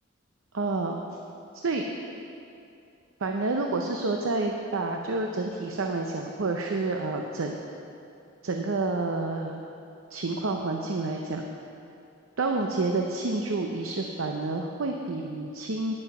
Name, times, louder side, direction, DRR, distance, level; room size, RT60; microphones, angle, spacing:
voice 1, 0.5-1.0 1.5-1.9 3.2-7.6 8.4-9.6 10.1-11.5 12.4-16.0, right 3 dB, 80° right, 3 dB, 0.7 m, -29 dB
9.9 x 9.1 x 6.0 m, 2.6 s
head